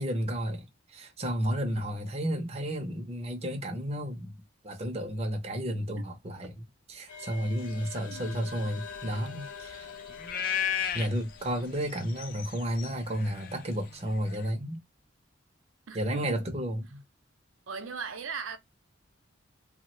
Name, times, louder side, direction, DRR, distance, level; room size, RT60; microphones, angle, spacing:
voice 1, 0.0-4.4 4.6-9.9 10.9-14.8 15.9-17.0, equal, 30° right, 0.5 m, -32 dB
sound 1, 7.1-14.0, left 6 dB, 70° left, 0.7 m, -47 dB
sound 2, 7.7-14.5, left 9 dB, 45° left, 0.4 m, -36 dB
voice 2, 15.9-16.4 17.7-18.6, right 5 dB, 90° right, 0.6 m, -38 dB
3.0 x 2.1 x 2.9 m
head